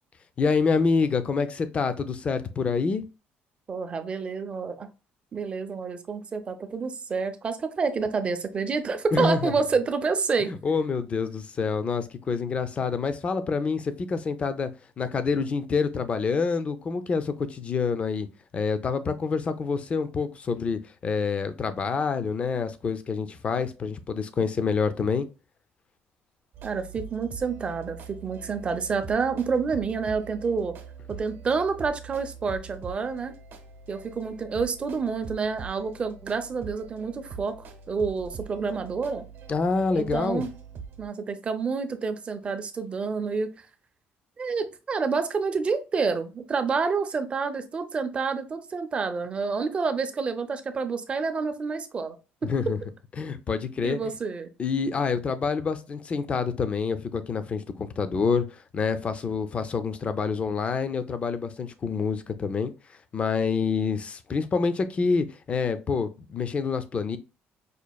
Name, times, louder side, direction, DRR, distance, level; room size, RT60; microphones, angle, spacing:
voice 1, 0.4-3.0 9.1-9.5 10.4-14.7 15.0-18.3 18.5-25.3 39.5-40.4 52.4-52.8 53.2-54.0 54.6-58.4 58.7-62.7 63.1-67.2, left 5 dB, 30° left, 0.4 m, -27 dB
voice 2, 3.7-4.9 5.3-10.5 26.6-30.7 31.1-33.3 33.9-37.5 37.9-39.2 39.9-40.5 41.0-43.7 44.4-52.2 52.4-52.5 53.8-54.5, right 5 dB, 30° right, 0.5 m, -28 dB
sound 1, 26.5-41.1, right 6 dB, 65° right, 0.7 m, -43 dB
5.1 x 2.4 x 2.2 m
cardioid pair, 140°, 4 cm